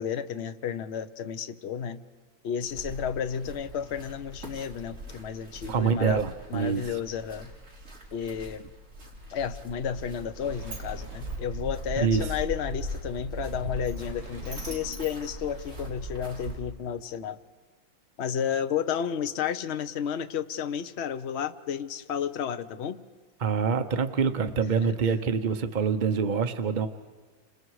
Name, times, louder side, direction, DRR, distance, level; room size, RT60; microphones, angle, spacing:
voice 1, 0.0-2.0 2.4-6.2 6.5-7.5 8.1-8.6 9.3-17.4 18.2-23.1 24.8-24.9, left 8 dB, 55° left, 10 dB, 0.7 m, -32 dB
sound 1, 2.7-16.6, equal, 40° right, 4.4 m, -40 dB
voice 2, 5.7-7.0 12.0-12.3 23.4-26.9, right 6 dB, 60° right, 8 dB, 0.4 m, -26 dB
Sliding door, 9.8-16.2, right 2 dB, 80° right, 5.5 m, -47 dB
30.0 x 26.5 x 4.8 m, 1.5 s
omnidirectional pair, 2.1 m